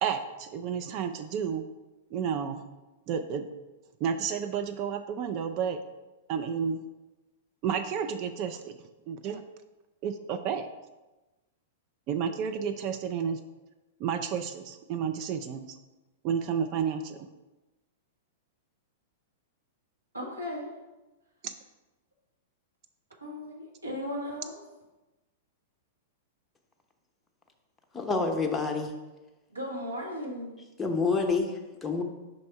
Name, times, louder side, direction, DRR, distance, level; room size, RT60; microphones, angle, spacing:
voice 1, 0.0-1.6 2.1-2.6 3.1-3.5 4.0-5.8 6.3-6.8 7.6-8.8 9.1-9.4 10.0-10.7 12.1-13.4 14.0-15.7 16.2-17.3 21.4-21.5, right 7 dB, 40° right, 8 dB, 0.4 m, -31 dB
voice 2, 20.1-20.7 23.2-24.6 29.5-30.6, left 1 dB, 80° right, -3 dB, 1.4 m, -36 dB
voice 3, 27.9-28.9 30.8-32.0, left 4 dB, 10° left, 2 dB, 0.7 m, -28 dB
5.2 x 3.4 x 5.6 m, 1.1 s
figure-of-eight pair, 100°, 0 cm